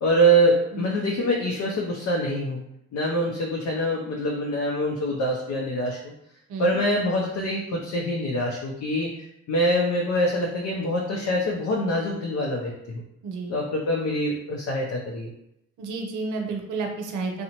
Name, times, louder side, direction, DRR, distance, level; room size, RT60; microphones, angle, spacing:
voice 1, 0.0-2.6 2.9-6.1 6.6-9.1 9.5-13.0 13.5-15.3, equal, 60° left, -1 dB, 0.5 m, -24 dB
voice 2, 13.2-13.5 15.8-17.4, right 3 dB, 80° right, 3 dB, 0.6 m, -31 dB
2.7 x 2.0 x 2.8 m, 0.81 s
cardioid pair, 90°, 30 cm